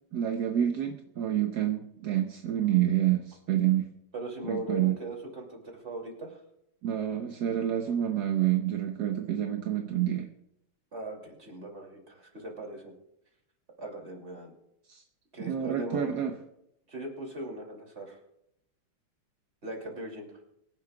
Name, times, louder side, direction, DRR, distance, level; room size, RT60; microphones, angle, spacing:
voice 1, 0.1-3.9 4.4-5.0 6.8-10.3 14.9-15.0 15.5-16.3, right 11 dB, 60° right, 5 dB, 1.2 m, -28 dB
voice 2, 4.1-6.4 10.9-12.9 13.8-14.5 15.3-16.3 16.9-18.2 19.6-20.4, right 2 dB, 30° right, 1 dB, 2.9 m, -39 dB
24.5 x 10.5 x 2.3 m, 0.81 s
omnidirectional pair, 2.3 m